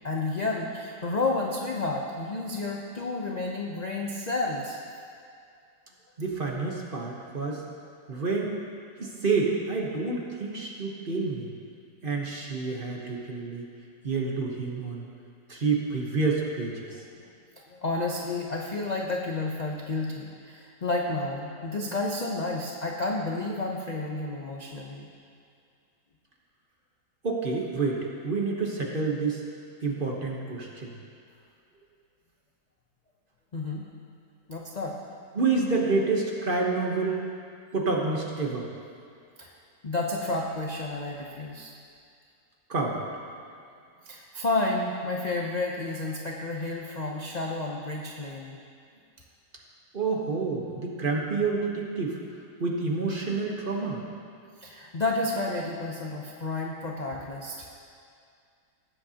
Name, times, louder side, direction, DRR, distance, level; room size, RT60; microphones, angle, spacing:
voice 1, 0.0-4.8 7.6-7.8 17.1-17.3 17.7-25.1 33.5-33.8 34.5-35.0 39.4-39.5 39.8-41.7 44.1-48.6 54.6-57.7, left 2 dB, 50° left, -1 dB, 0.5 m, -31 dB
voice 2, 6.2-7.6 8.1-8.6 9.0-11.5 12.0-13.7 14.0-15.1 15.5-16.9 27.2-29.4 29.8-30.9 35.3-37.3 37.7-38.7 42.7-43.0 49.9-52.2 52.6-54.0, right 4 dB, 35° right, -1 dB, 1.1 m, -28 dB
18.5 x 7.8 x 2.9 m, 2.3 s
omnidirectional pair, 1.8 m